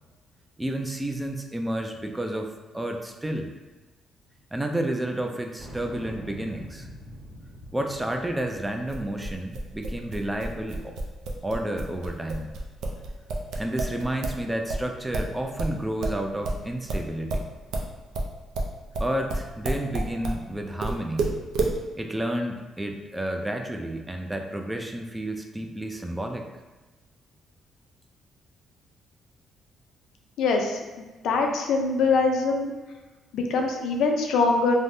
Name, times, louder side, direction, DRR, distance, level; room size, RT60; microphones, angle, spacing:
voice 1, 0.6-3.5 4.5-6.9 7.7-11.0 11.4-12.5 13.6-17.5 19.0-21.4 21.9-26.4, right 1 dB, 10° right, 3 dB, 0.3 m, -31 dB
sound 1, 5.6-10.3, equal, 65° right, 1.4 m, -44 dB
sound 2, 8.9-14.4 14.7-20.4 20.8-21.8, right 2 dB, 80° right, 0.4 m, -29 dB
voice 2, 30.4-30.8 31.2-32.7 33.3-34.7, left 4 dB, 80° left, 2 dB, 0.4 m, -23 dB
3.4 x 2.1 x 2.6 m, 1.2 s
cardioid pair, 90°, 0 cm